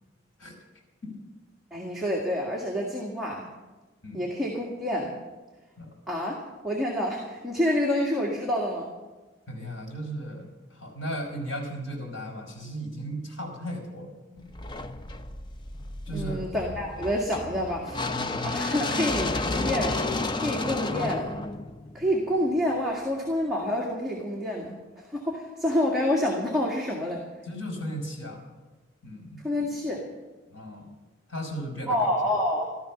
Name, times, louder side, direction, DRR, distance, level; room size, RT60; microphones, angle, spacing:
voice 1, 1.7-3.5 4.1-5.1 6.1-6.4 6.6-8.9 16.1-18.0 18.4-20.0 20.4-21.4 21.9-27.2 29.4-30.0 31.9-32.7, left 1 dB, ahead, -3 dB, 1.9 m, -28 dB
voice 2, 9.5-14.5 16.1-16.4 18.2-18.5 27.4-28.4 29.0-29.4 30.5-30.9 31.3-32.0, equal, 75° left, 0 dB, 5.1 m, -36 dB
sound 1, 14.5-22.6, left 2 dB, 25° left, 0.6 m, -31 dB
14.5 x 13.0 x 6.0 m, 1.2 s
head